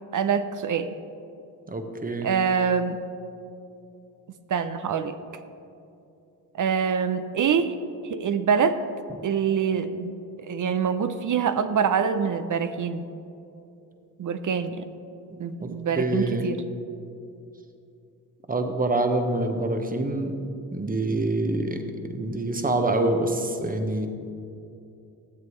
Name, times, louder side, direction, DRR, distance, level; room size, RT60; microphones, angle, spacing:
voice 1, 0.1-0.9 2.2-3.0 4.5-5.2 6.5-7.7 8.1-8.8 9.2-10.1 10.4-13.0 14.2-14.9 15.4-16.6, right 6 dB, 45° right, 11 dB, 0.6 m, -25 dB
voice 2, 1.7-2.3 15.6-15.7 16.0-16.4 18.5-20.3 20.7-21.8 22.1-24.1, right 2 dB, 20° right, 6 dB, 1.0 m, -25 dB
12.5 x 7.6 x 3.1 m, 2.7 s
supercardioid pair, 50°, 43 cm